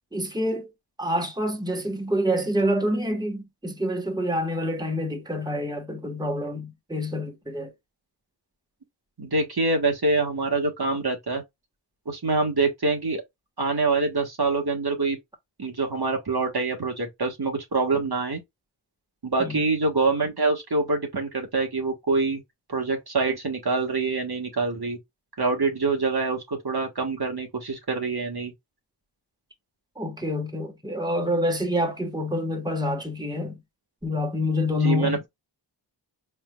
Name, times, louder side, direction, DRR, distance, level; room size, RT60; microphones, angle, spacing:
voice 1, 0.1-0.7 1.0-7.7 19.4-19.6 30.0-33.6 34.0-35.2, left 1 dB, 10° right, 1.3 m, -27 dB
voice 2, 9.2-11.4 12.1-13.2 13.6-15.2 15.6-18.4 19.2-22.4 22.7-25.0 25.4-28.5 34.8-35.3, right 3 dB, 55° right, 1.4 m, -25 dB
4.7 x 3.4 x 2.3 m
wide cardioid pair, 45°, 44 cm